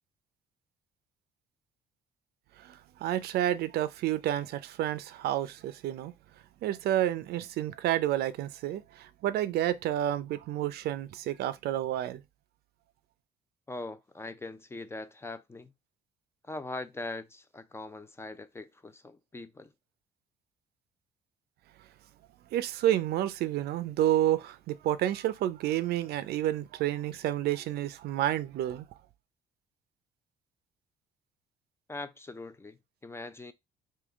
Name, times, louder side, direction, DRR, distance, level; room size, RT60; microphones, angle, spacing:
voice 1, 2.6-6.1 6.6-12.2 22.5-28.9, right 12 dB, 70° right, 0.5 m, -30 dB
voice 2, 13.7-15.7 16.5-19.7 31.9-33.5, left 2 dB, 15° left, 0.5 m, -41 dB
3.7 x 2.8 x 3.5 m
cardioid pair, 110°, 17 cm